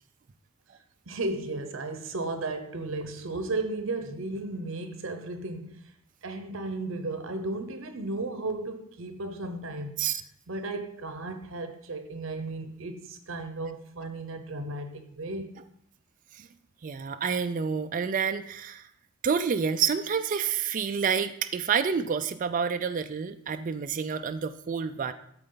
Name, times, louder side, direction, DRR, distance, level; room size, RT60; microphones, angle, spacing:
voice 1, 1.1-5.9 6.2-10.0 10.5-15.6, right 2 dB, 60° right, 0.8 m, -34 dB
voice 2, 16.8-18.9 19.2-25.1, right 6 dB, 35° right, 0.4 m, -28 dB
13.0 x 4.4 x 3.9 m
head